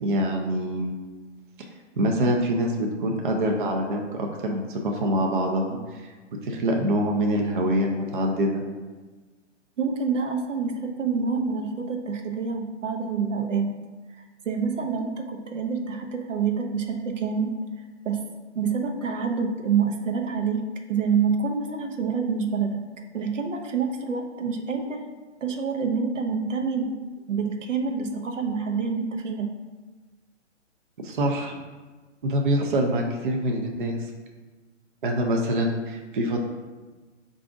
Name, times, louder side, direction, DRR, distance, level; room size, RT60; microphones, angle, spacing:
voice 1, 0.0-0.9 2.0-6.1 6.4-8.6 31.0-31.5 32.2-34.0 35.0-36.4, equal, 45° right, 1 dB, 0.5 m, -25 dB
voice 2, 9.8-13.7 14.4-17.5 18.0-18.2 18.5-20.6 20.9-22.8 23.1-25.1 25.4-27.0 27.3-29.5, right 5 dB, 85° right, 4 dB, 0.8 m, -27 dB
4.7 x 2.5 x 3.6 m, 1.3 s
hypercardioid pair, 165°, 37 cm